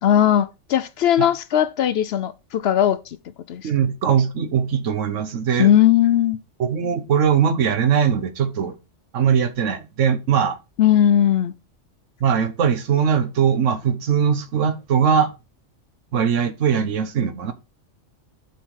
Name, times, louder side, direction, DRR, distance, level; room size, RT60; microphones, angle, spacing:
voice 1, 0.0-3.0 3.5-3.7 5.6-6.4 10.8-11.5, left 10 dB, 65° left, 0.8 m, -18 dB
voice 2, 3.6-5.7 6.6-8.8 9.1-10.6 12.2-15.3 16.1-17.5, right 7 dB, 80° right, 1.3 m, -20 dB
7.2 x 5.7 x 4.6 m
omnidirectional pair, 1.3 m